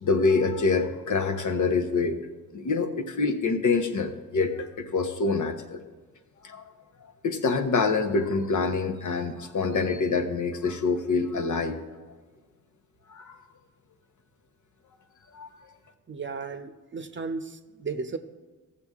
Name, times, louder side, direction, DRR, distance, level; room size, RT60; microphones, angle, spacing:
voice 1, 0.0-2.2 2.5-5.8 6.4-6.6 7.2-11.8 13.1-13.4 15.3-15.5, left 4 dB, 60° left, 6 dB, 1.1 m, -26 dB
voice 2, 16.1-18.2, right 4 dB, 35° right, 8 dB, 0.8 m, -35 dB
14.5 x 6.9 x 3.6 m, 1.3 s
cardioid pair, 65°, 35 cm